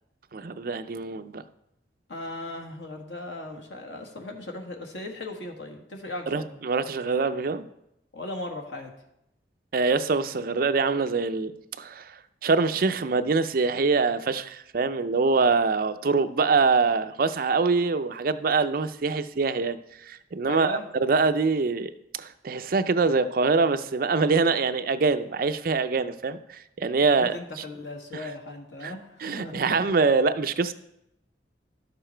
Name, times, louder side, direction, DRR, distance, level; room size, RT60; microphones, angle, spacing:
voice 1, 0.3-1.4 6.3-7.7 9.7-11.5 11.8-27.3 28.1-28.2 28.8-28.9 29.2-30.7, right 4 dB, 50° right, 11 dB, 0.5 m, -24 dB
voice 2, 2.1-6.5 8.1-8.9 20.5-20.8 27.0-29.9, left 2 dB, 90° left, 2 dB, 1.6 m, -37 dB
12.0 x 6.9 x 4.4 m, 0.83 s
head